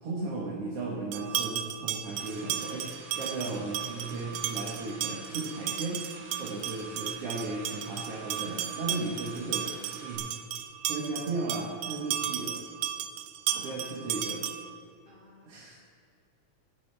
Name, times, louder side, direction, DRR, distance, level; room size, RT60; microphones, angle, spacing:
voice 1, 0.0-2.9 3.1-6.0 6.4-9.7 10.0-10.3 10.9-12.6 13.5-14.4 15.5-15.8, right 2 dB, 60° right, -4 dB, 2.3 m, -35 dB
sound 1, 1.1-14.8, right 10 dB, 75° right, 1.5 m, -35 dB
sound 2, 2.1-10.2, right 2 dB, 25° right, 1.7 m, -50 dB
voice 2, 13.5-14.0 15.1-15.9, left 3 dB, 85° left, -3 dB, 0.4 m, -55 dB
18.0 x 10.0 x 3.4 m, 2.4 s
omnidirectional pair, 3.3 m